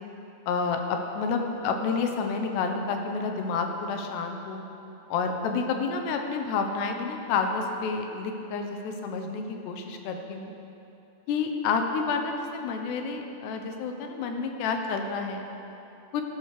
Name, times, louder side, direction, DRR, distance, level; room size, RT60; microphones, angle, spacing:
voice 1, 0.5-4.6 5.1-10.5 11.3-15.5 16.1-16.2, left 5 dB, 85° left, 4 dB, 3.2 m, -29 dB
14.0 x 12.0 x 6.7 m, 2.8 s
omnidirectional pair, 4.7 m